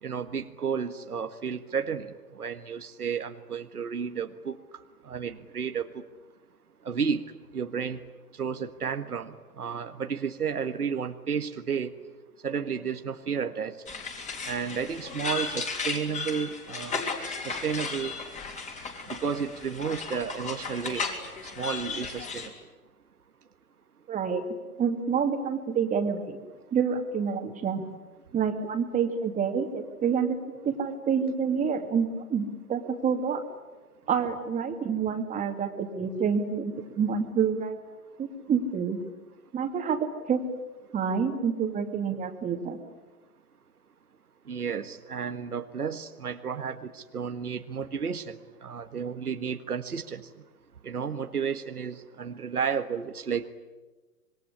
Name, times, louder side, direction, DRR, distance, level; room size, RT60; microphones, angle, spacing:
voice 1, 0.0-2.1 2.3-4.5 5.1-5.9 6.8-7.2 7.5-8.0 8.4-11.9 12.4-13.7 14.4-17.0 17.4-18.1 19.1-21.0 21.6-22.5 44.5-50.2 50.8-53.5, right 6 dB, 75° right, 8 dB, 1.7 m, -32 dB
sound 1, 13.9-22.5, left 4 dB, 15° left, 3.6 m, -35 dB
voice 2, 24.1-24.4 24.8-26.4 26.7-27.8 28.3-30.4 30.6-33.4 34.1-37.8 38.2-39.0 39.5-40.4 40.9-42.8, right 6 dB, 15° right, 6 dB, 2.4 m, -28 dB
26.0 x 22.0 x 9.9 m, 1.2 s
figure-of-eight pair, 115°, 46 cm